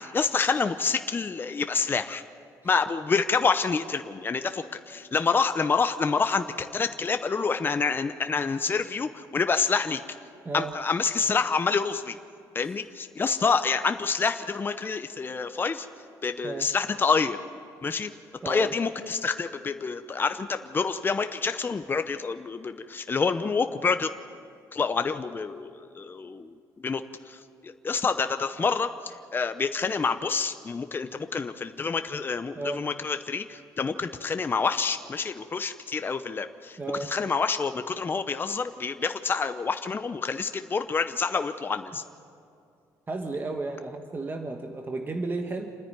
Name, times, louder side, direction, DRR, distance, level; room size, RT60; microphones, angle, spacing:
voice 1, 0.0-2.2 2.6-10.0 10.5-12.2 12.5-15.9 16.2-17.4 17.8-18.1 18.4-24.1 24.7-27.0 27.3-42.0, left 5 dB, 30° left, 9 dB, 0.8 m, -27 dB
voice 2, 18.4-18.7 32.5-32.8 36.8-37.1 43.1-45.7, right 3 dB, 25° right, 4 dB, 1.4 m, -33 dB
27.5 x 10.0 x 9.4 m, 2.4 s
cardioid pair, 85°, 8 cm